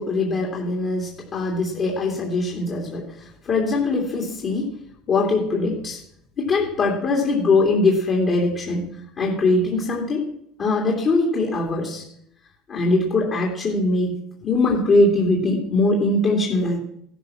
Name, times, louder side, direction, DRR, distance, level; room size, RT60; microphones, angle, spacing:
voice 1, 0.0-4.7 5.1-6.0 6.4-8.8 9.2-10.2 10.6-12.0 12.7-14.2 14.4-16.8, left 2 dB, 30° left, -1 dB, 3.0 m, -21 dB
16.5 x 13.0 x 5.9 m, 0.71 s
cardioid pair, 165°, 0 cm